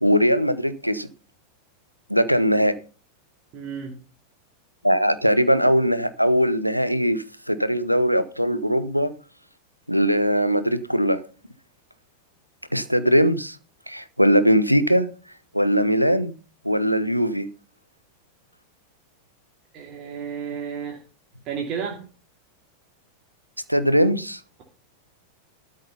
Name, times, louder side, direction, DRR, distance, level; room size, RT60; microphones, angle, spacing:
voice 1, 0.0-1.1 2.1-2.7 4.8-9.1 9.9-11.2 12.7-13.6 13.9-15.1 15.5-16.3 16.6-17.5 23.7-24.4, equal, 90° right, 1.0 m, -20 dB
voice 2, 3.5-4.0 19.7-21.0 21.4-22.1, right 7 dB, 40° right, 2.6 m, -32 dB
13.0 x 6.4 x 5.6 m
figure-of-eight pair, 90°, 0 cm